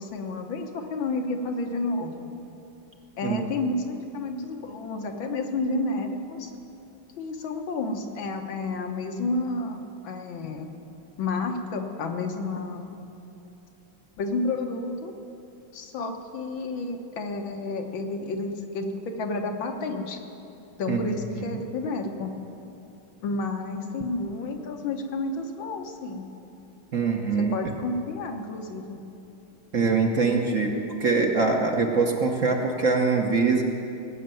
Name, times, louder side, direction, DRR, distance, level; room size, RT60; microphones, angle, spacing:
voice 1, 0.0-2.3 3.2-6.5 7.2-10.7 11.2-13.0 14.2-15.1 15.7-20.2 20.8-22.3 23.2-26.3 27.4-29.0, left 3 dB, 75° left, 4 dB, 1.9 m, -31 dB
voice 2, 20.9-21.6 26.9-27.5 29.7-30.7 31.0-33.6, right 4 dB, 45° right, 1 dB, 1.2 m, -23 dB
19.5 x 6.7 x 9.0 m, 2.9 s
omnidirectional pair, 2.2 m